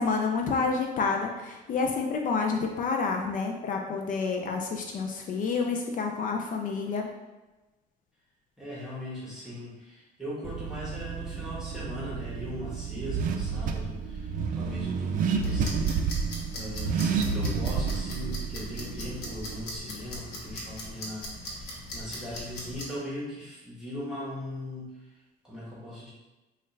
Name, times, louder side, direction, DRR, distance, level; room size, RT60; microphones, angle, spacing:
voice 1, 0.0-7.1, left 4 dB, 50° left, 2 dB, 0.5 m, -29 dB
voice 2, 8.6-16.0 16.5-25.1 25.4-26.1, left 1 dB, 5° right, -8 dB, 1.2 m, -39 dB
Car / Accelerating revving vroom, 10.4-19.6, right 5 dB, 55° right, 0.4 m, -30 dB
sound 1, 15.4-22.8, left 1 dB, 65° left, 1.1 m, -40 dB
4.1 x 2.4 x 3.2 m, 1.1 s
cardioid pair, 110°, 17 cm